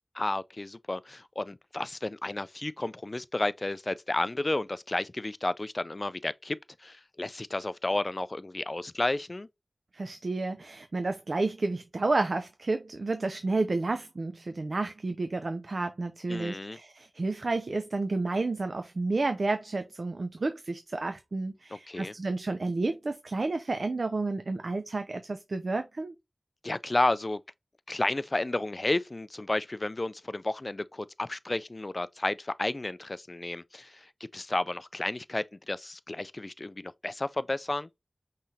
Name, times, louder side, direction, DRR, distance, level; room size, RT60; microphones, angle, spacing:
voice 1, 0.1-9.5 16.3-16.8 21.7-22.1 26.6-27.4 27.9-37.9, left 2 dB, 40° left, 0.3 m, -32 dB
voice 2, 9.9-26.1, right 3 dB, 70° right, 0.4 m, -31 dB
5.6 x 3.1 x 2.7 m
wide cardioid pair, 75°, 0 cm